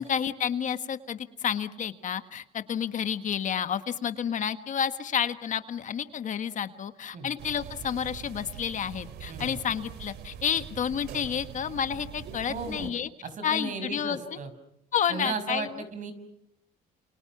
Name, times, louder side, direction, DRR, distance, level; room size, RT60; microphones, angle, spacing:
voice 1, 0.0-13.1 13.4-14.2 14.9-15.7, left 8 dB, 50° left, 10 dB, 1.6 m, -30 dB
sound 1, 7.4-12.9, right 8 dB, 75° right, 2.5 m, -43 dB
voice 2, 9.3-9.6 12.5-12.9 13.2-14.5 15.1-16.1, right 4 dB, 50° right, 10 dB, 5.8 m, -35 dB
30.0 x 29.0 x 6.0 m, 0.79 s
cardioid pair, 110°, 17 cm